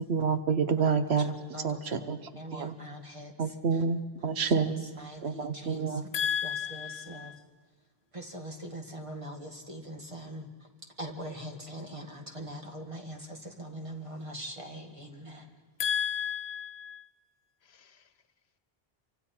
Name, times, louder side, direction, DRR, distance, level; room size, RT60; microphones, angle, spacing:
voice 1, 0.0-1.3 1.6-2.2 2.5-2.7 3.4-4.8 5.2-6.0, right 5 dB, 80° right, 10 dB, 1.2 m, -28 dB
voice 2, 0.8-3.8 4.4-7.3 8.1-10.5 11.0-15.5, equal, 30° right, 3 dB, 2.0 m, -42 dB
voice 3, 6.1-7.4 15.8-17.1 17.7-18.0, left 8 dB, 85° left, 12 dB, 1.2 m, -33 dB
28.5 x 24.5 x 4.4 m, 1.4 s
omnidirectional pair, 1.1 m